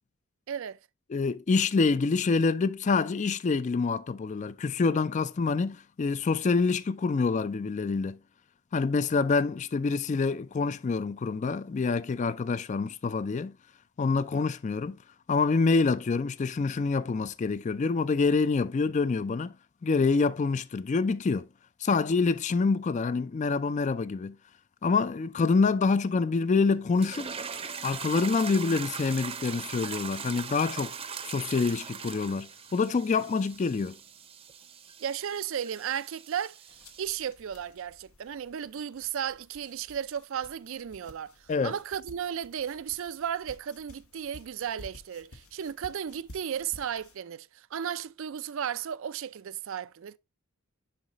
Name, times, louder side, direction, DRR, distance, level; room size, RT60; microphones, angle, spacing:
voice 1, 0.5-0.8 35.0-36.6 37.0-50.2, right 8 dB, 65° right, 0.4 m, -34 dB
voice 2, 1.1-8.2 8.7-13.5 14.0-15.0 15.3-19.5 19.8-21.5 21.8-24.4 24.8-27.3 27.8-31.0 31.3-34.0 41.5-41.7, left 4 dB, 35° left, 0.3 m, -26 dB
sound 1, 27.0-37.1, right 6 dB, 25° right, 0.6 m, -40 dB
sound 2, 36.7-47.2, left 1 dB, 85° left, 1.1 m, -53 dB
10.0 x 4.0 x 3.0 m
head